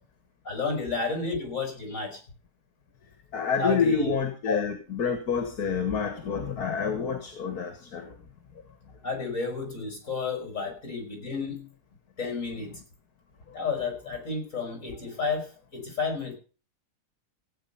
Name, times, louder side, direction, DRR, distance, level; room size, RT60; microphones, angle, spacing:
voice 1, 0.5-2.2 3.6-4.2 4.5-4.6 9.0-11.7 12.2-12.8 13.5-16.3, left 4 dB, 50° left, 5 dB, 5.6 m, -31 dB
voice 2, 3.3-8.2, left 5 dB, 65° left, 8 dB, 2.2 m, -28 dB
16.5 x 8.8 x 5.6 m, 0.36 s
omnidirectional pair, 1.7 m